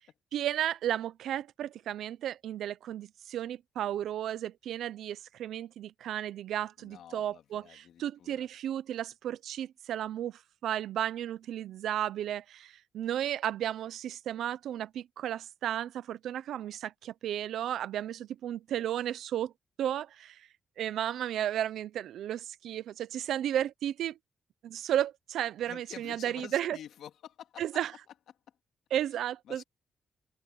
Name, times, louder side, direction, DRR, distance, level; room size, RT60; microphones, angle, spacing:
voice 1, 0.3-19.5 19.8-20.5 20.8-24.2 24.6-26.8 27.6-27.9 28.9-29.6, right 11 dB, 80° right, 0.6 m, -34 dB
voice 2, 6.8-8.5 25.6-27.6 29.5-29.6, left 10 dB, 75° left, 2.9 m, -49 dB
cardioid pair, 155°, 0 cm